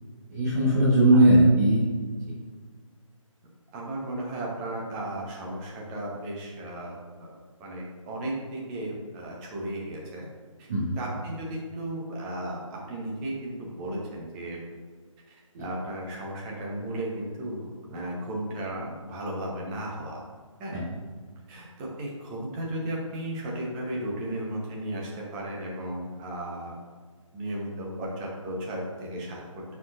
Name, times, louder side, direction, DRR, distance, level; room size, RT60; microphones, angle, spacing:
voice 1, 0.3-1.8 10.7-10.9 15.5-15.6 20.7-20.9, right 1 dB, 30° right, -6 dB, 1.1 m, -19 dB
voice 2, 3.7-7.3 7.6-10.3 10.6-10.7 11.0-14.6 15.3-20.2 20.6-20.7 21.5-26.7 27.3-29.7, right 1 dB, 15° right, -3 dB, 0.9 m, -35 dB
9.4 x 4.5 x 2.5 m, 1.5 s
figure-of-eight pair, 150°, 17 cm